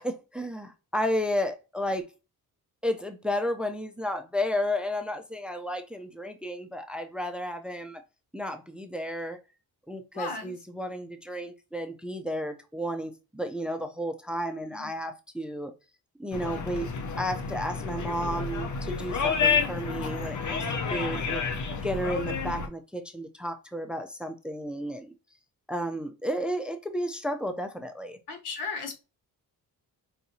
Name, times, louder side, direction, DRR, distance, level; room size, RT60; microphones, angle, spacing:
voice 1, 0.0-2.1 2.8-8.0 8.3-9.4 9.9-15.7 16.2-16.9 17.2-21.4 21.8-25.1 25.7-28.2, equal, 5° right, 0.5 m, -32 dB
voice 2, 10.1-10.6 14.7-14.9 28.3-28.9, left 4 dB, 85° left, 1.2 m, -35 dB
sound 1, 16.3-22.7, left 5 dB, 50° left, 0.7 m, -30 dB
4.8 x 2.6 x 2.7 m
cardioid pair, 85°, 38 cm